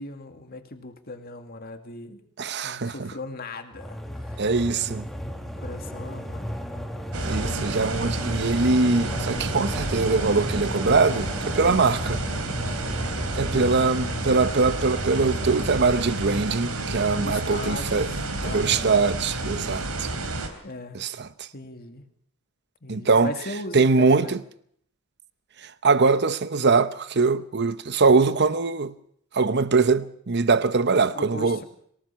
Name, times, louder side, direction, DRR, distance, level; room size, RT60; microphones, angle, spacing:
voice 1, 0.0-2.2 2.6-4.5 4.9-5.0 5.4-6.6 13.5-13.9 17.2-19.0 20.6-21.0 21.5-22.1 22.8-24.4 31.1-31.6, left 2 dB, 45° left, 2.2 m, -38 dB
voice 2, 2.4-3.1 4.4-5.0 7.2-12.2 13.3-18.1 18.4-20.1 20.9-21.5 22.9-23.3 23.7-24.4 25.6-28.9 29.3-31.6, right 4 dB, 50° right, 0.9 m, -22 dB
sound 1, 3.7-16.8, equal, ahead, 1.9 m, -34 dB
sound 2, 7.1-20.5, right 2 dB, 85° right, 3.3 m, -30 dB
26.0 x 18.0 x 5.8 m
head